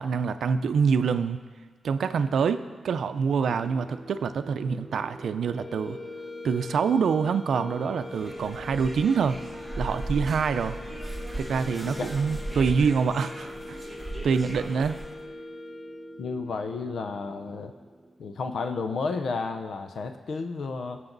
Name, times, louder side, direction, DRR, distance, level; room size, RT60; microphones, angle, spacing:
voice 1, 0.0-1.4 1.8-6.0 6.4-9.4 9.8-10.8 11.4-13.8 14.2-15.0, right 6 dB, 80° right, 10 dB, 0.6 m, -26 dB
sound 1, 3.3-19.6, right 3 dB, 20° right, 1.2 m, -48 dB
sound 2, 5.5-16.4, left 3 dB, 30° left, 1.0 m, -42 dB
sound 3, 8.0-15.2, right 1 dB, ahead, 1.2 m, -37 dB
voice 2, 16.2-17.7 18.2-21.0, left 4 dB, 70° left, 7 dB, 0.7 m, -32 dB
22.0 x 7.5 x 4.0 m, 1.5 s
wide cardioid pair, 150°, 0 cm